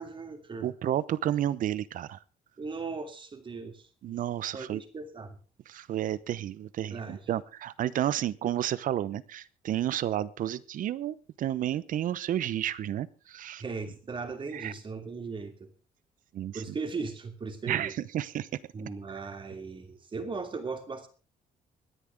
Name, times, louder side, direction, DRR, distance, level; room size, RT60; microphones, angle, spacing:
voice 1, 0.0-0.7 2.6-3.9 4.5-5.4 6.9-7.2 13.6-15.7 16.5-17.9 18.7-21.1, right 4 dB, 35° right, 6 dB, 2.8 m, -38 dB
voice 2, 0.6-2.2 4.0-4.8 5.7-13.6 14.5-14.7 16.3-16.6 17.7-18.5, right 11 dB, 65° right, 19 dB, 0.8 m, -31 dB
24.0 x 10.0 x 3.6 m, 0.36 s
cardioid pair, 110°, 15 cm